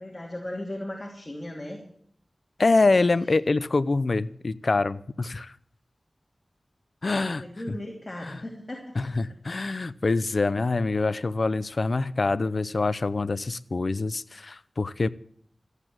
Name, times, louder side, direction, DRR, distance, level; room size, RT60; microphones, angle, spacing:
voice 1, 0.0-1.8 2.8-3.3 7.2-9.1 9.5-9.6, left 1 dB, 30° left, 0 dB, 2.9 m, -37 dB
voice 2, 2.6-5.5 7.0-7.4 8.2-8.4 9.0-15.1, left 3 dB, 55° left, 16 dB, 0.6 m, -25 dB
14.5 x 8.2 x 8.8 m, 0.64 s
wide cardioid pair, 75°, 0 cm